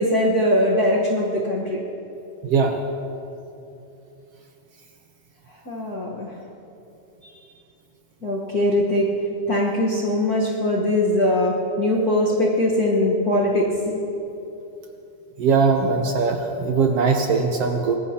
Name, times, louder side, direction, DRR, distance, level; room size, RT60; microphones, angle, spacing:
voice 1, 0.0-1.8 5.7-6.3 8.2-14.1, left 1 dB, 50° left, -4 dB, 1.2 m, -21 dB
voice 2, 2.4-2.8 15.4-18.0, right 5 dB, 70° right, 3 dB, 1.5 m, -20 dB
23.5 x 19.5 x 2.9 m, 2.8 s
omnidirectional pair, 3.6 m